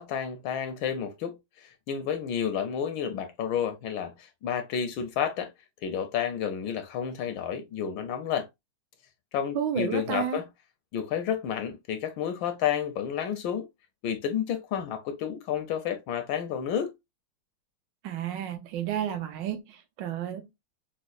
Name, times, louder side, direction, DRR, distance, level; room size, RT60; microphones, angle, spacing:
voice 1, 0.0-1.4 1.9-5.5 5.8-8.5 9.3-10.5 10.9-13.7 14.0-16.9, left 8 dB, 75° left, 1.3 m, -30 dB
voice 2, 9.5-10.4 18.0-20.7, right 9 dB, 70° right, 1.3 m, -32 dB
5.1 x 2.0 x 2.4 m
omnidirectional pair, 2.3 m